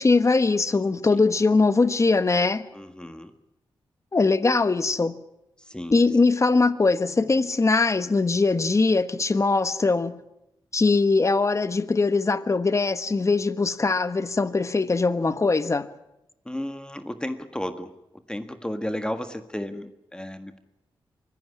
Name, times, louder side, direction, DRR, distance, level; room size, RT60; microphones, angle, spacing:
voice 1, 0.0-2.6 4.1-5.2 5.9-10.2 10.7-15.9, left 3 dB, 35° left, 1.3 m, -21 dB
voice 2, 2.7-3.3 5.6-6.0 16.4-20.6, left 1 dB, 10° left, 1.6 m, -34 dB
24.0 x 15.5 x 9.7 m
cardioid pair, 65°, 9 cm